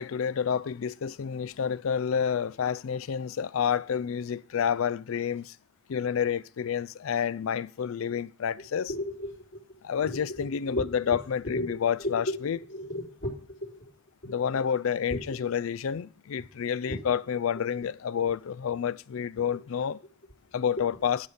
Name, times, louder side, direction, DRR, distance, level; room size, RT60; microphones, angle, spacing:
voice 1, 0.0-5.5 5.9-8.9 9.8-12.6 14.2-20.0 20.5-21.2, left 7 dB, 90° left, 0.4 m, -29 dB
voice 2, 8.9-9.6 10.0-13.9 14.2-14.6 15.1-15.4 16.9-17.0 17.5-17.9, left 1 dB, 65° left, 3.8 m, -36 dB
11.0 x 5.3 x 6.5 m
head